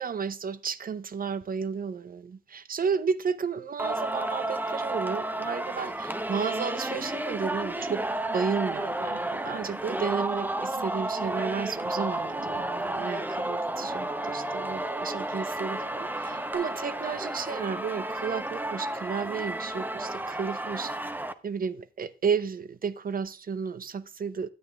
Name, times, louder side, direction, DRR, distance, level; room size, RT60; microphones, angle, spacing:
voice 1, 0.0-8.1 8.3-20.9 21.4-24.5, right 6 dB, 55° right, 0.7 m, -32 dB
Singing, 3.8-21.3, right 1 dB, 10° right, 0.7 m, -32 dB
sound 1, 6.5-16.5, right 9 dB, 80° right, 1.7 m, -51 dB
10.5 x 8.6 x 3.5 m
cardioid pair, 75°, 18 cm